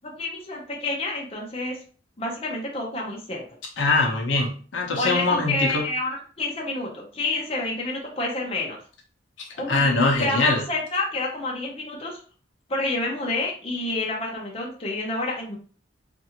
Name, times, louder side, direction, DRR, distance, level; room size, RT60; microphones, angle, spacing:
voice 1, 0.0-1.8 2.2-3.4 5.0-8.8 9.6-9.8 10.2-12.2 12.7-15.6, left 2 dB, 30° left, -2 dB, 0.7 m, -28 dB
voice 2, 3.8-5.9 9.4-10.6, left 3 dB, 85° left, 0 dB, 0.7 m, -23 dB
2.6 x 2.5 x 2.8 m, 0.41 s
head